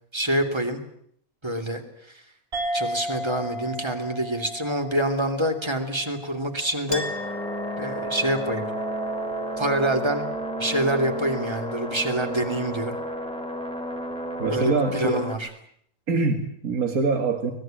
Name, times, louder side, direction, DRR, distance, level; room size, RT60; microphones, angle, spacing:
voice 1, 0.1-0.8 1.4-1.8 2.7-7.0 7.8-8.7 9.6-10.3 10.6-13.0 14.5-15.5, right 1 dB, 20° right, 5 dB, 3.0 m, -26 dB
sound 1, 2.5-7.4, equal, 40° right, 5.1 m, -35 dB
Chink clink, 6.9-14.0, right 4 dB, 35° left, 2.5 m, -37 dB
sound 2, 6.9-15.4, left 1 dB, 5° left, 2.9 m, -33 dB
voice 2, 14.4-15.2 16.1-17.5, right 3 dB, 80° right, 6 dB, 2.5 m, -24 dB
24.5 x 20.0 x 9.2 m, 0.69 s
omnidirectional pair, 1.5 m